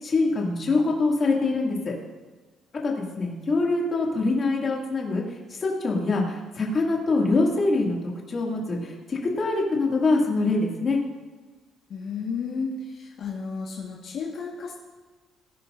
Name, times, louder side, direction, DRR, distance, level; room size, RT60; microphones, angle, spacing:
voice 1, 0.0-1.9 2.8-5.2 5.5-8.0 8.3-11.0, left 3 dB, 30° left, -2 dB, 2.3 m, -24 dB
voice 2, 11.9-14.7, left 5 dB, 50° left, -3 dB, 1.6 m, -32 dB
19.5 x 11.0 x 2.6 m, 1.3 s
cardioid pair, 180°, 0 cm